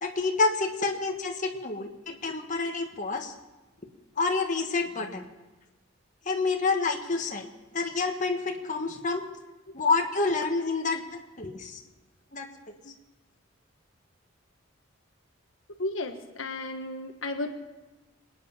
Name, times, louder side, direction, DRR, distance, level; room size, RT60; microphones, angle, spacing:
voice 1, 0.0-3.3 4.2-5.3 6.2-7.5 7.7-9.2 9.7-11.8 12.3-12.7, left 3 dB, 40° left, 2 dB, 1.5 m, -28 dB
voice 2, 15.8-17.5, left 2 dB, 80° left, 5 dB, 1.5 m, -33 dB
26.0 x 9.6 x 5.8 m, 1.1 s
head